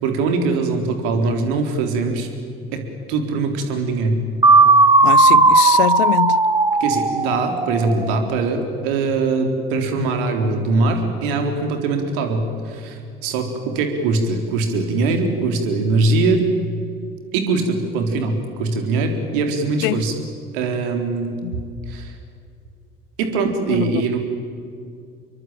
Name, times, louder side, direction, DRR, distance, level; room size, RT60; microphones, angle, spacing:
voice 1, 0.0-2.3 2.7-4.2 6.8-16.4 17.3-20.2 20.5-21.4 21.9-22.1 23.2-24.2, right 3 dB, 65° right, 3.8 m, -22 dB
sound 1, 4.4-8.3, right 3 dB, 15° right, 1.8 m, -15 dB
voice 2, 5.0-6.4 19.8-20.0 21.4-21.6 23.7-24.0, left 17 dB, 60° left, 0.6 m, -23 dB
26.5 x 23.0 x 8.9 m
figure-of-eight pair, 65°, 29 cm